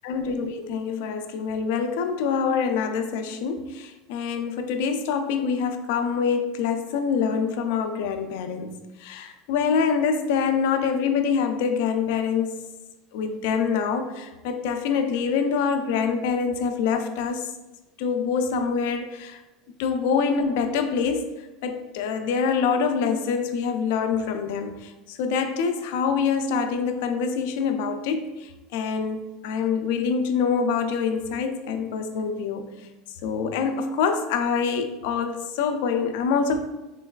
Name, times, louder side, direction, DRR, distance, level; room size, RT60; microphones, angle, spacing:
voice 1, 0.0-8.7 9.0-12.5 13.1-17.5 18.0-19.4 19.8-21.3 21.6-32.7 33.2-36.6, left 6 dB, 70° left, 7 dB, 0.3 m, -25 dB
3.8 x 2.3 x 2.2 m, 1.1 s
cardioid pair, 170°, 0 cm